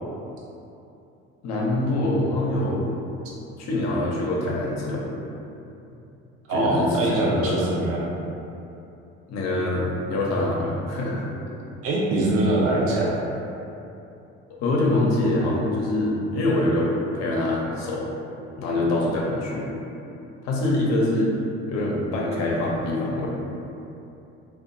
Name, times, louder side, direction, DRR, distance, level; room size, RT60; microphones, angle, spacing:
voice 1, 1.4-2.9 3.6-5.0 6.5-7.6 9.3-11.2 14.6-18.1 18.6-19.7 20.4-21.3 21.7-23.3, left 1 dB, 65° left, -3 dB, 0.7 m, -24 dB
voice 2, 6.5-8.1 11.8-13.2, right 2 dB, 50° right, -5 dB, 0.5 m, -23 dB
2.8 x 2.3 x 2.5 m, 2.8 s
supercardioid pair, 80°, 29 cm